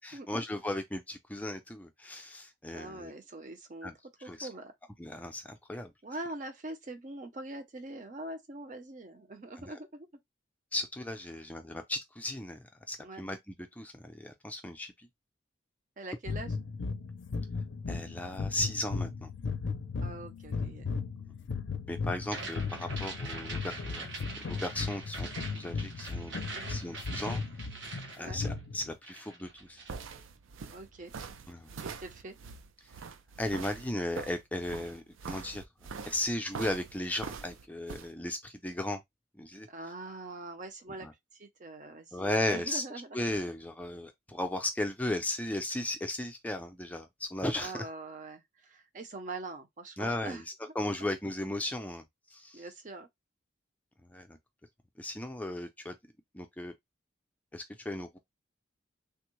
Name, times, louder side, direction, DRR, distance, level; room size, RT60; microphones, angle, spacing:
voice 1, 0.0-3.1 3.8-3.9 4.2-4.5 5.0-5.9 9.6-9.7 10.7-12.6 12.9-14.9 17.9-19.3 21.3-21.4 21.9-24.1 24.4-25.3 25.5-26.3 26.7-27.4 28.2-29.8 31.5-31.7 33.4-35.6 36.1-39.0 39.4-39.7 41.0-41.1 42.1-42.8 43.1-47.8 50.0-50.4 50.8-52.0 52.3-52.6 54.1-54.4 55.0-56.0 56.3-56.7 57.5-58.2, left 1 dB, 10° left, 0.4 m, -36 dB
voice 2, 2.7-3.9 4.2-4.7 6.0-10.1 11.3-11.4 13.0-13.2 16.0-16.6 20.0-20.9 26.5-26.8 28.2-28.4 30.7-31.1 31.8-32.4 39.7-41.1 41.3-43.2 47.5-50.5 52.5-53.1, right 2 dB, 40° right, 0.6 m, -43 dB
sound 1, 16.2-28.9, left 4 dB, 70° left, 0.4 m, -36 dB
sound 2, 22.2-28.8 29.0-30.0, right 3 dB, 65° right, 0.9 m, -43 dB
sound 3, 29.4-38.1, right 5 dB, 90° right, 0.5 m, -44 dB
3.5 x 2.1 x 3.0 m
head